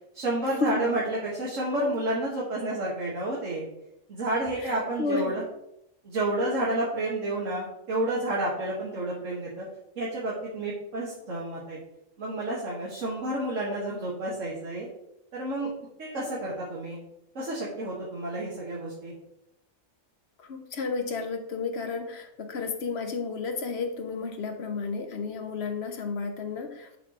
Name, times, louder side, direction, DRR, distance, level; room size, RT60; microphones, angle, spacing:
voice 1, 0.1-3.6 4.1-5.4 6.0-9.7 10.0-11.8 12.2-14.9 15.3-15.7 16.0-17.0 17.3-19.1, right 1 dB, 60° right, -4 dB, 1.8 m, -30 dB
voice 2, 4.6-5.4 20.4-26.9, left 4 dB, 55° left, 6 dB, 1.0 m, -32 dB
10.5 x 5.3 x 2.9 m, 0.82 s
omnidirectional pair, 1.5 m